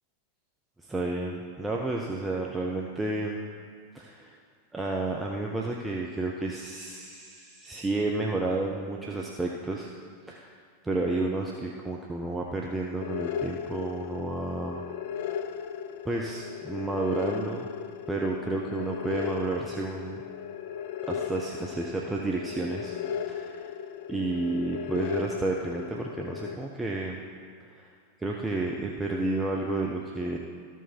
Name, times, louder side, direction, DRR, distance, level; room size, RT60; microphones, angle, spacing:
voice 1, 0.8-3.4 3.9-4.4 4.7-9.9 10.3-10.6 10.8-14.8 15.3-15.5 16.0-17.7 18.1-20.2 21.1-23.0 23.3-23.7 24.1-27.2 27.7-27.9 28.2-30.4, right 2 dB, 10° right, -1 dB, 0.7 m, -31 dB
sound 1, 13.0-26.5, left 8 dB, 50° left, 0.4 m, -36 dB
13.5 x 4.6 x 4.4 m, 2.1 s
figure-of-eight pair, 90°, 0 cm